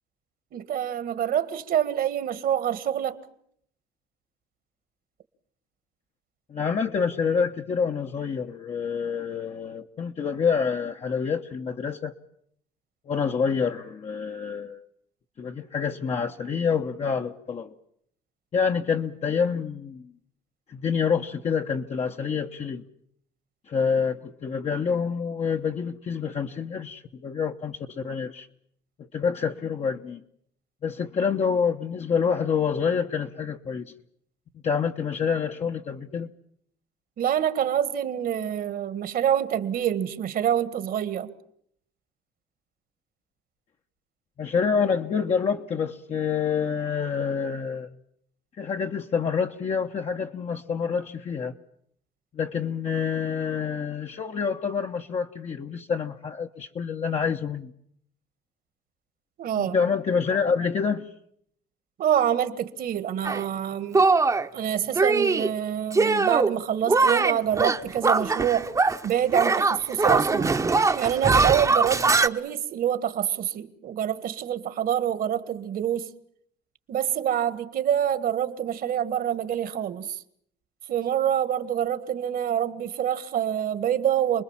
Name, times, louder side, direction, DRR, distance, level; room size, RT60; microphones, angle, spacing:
voice 1, 0.5-3.2 37.2-41.3 59.4-59.8 62.0-64.1 64.5-68.7 69.0-70.5 70.9-76.1 76.9-80.2 80.9-84.4, right 10 dB, 60° right, 1.7 m, -26 dB
voice 2, 6.5-12.1 13.1-14.8 15.4-17.7 18.5-20.1 20.7-22.8 23.7-28.5 29.1-30.2 30.8-33.9 34.6-36.3 44.4-47.9 48.6-51.5 52.3-57.7 59.6-61.1, left 6 dB, 40° left, 1.1 m, -27 dB
Shatter, 63.2-63.4 63.9-64.5 65.0-65.5 65.9-66.5 66.9-69.1 69.3-72.3, right 3 dB, 20° right, 1.0 m, -22 dB
28.0 x 21.0 x 7.4 m
cardioid pair, 110°, 17 cm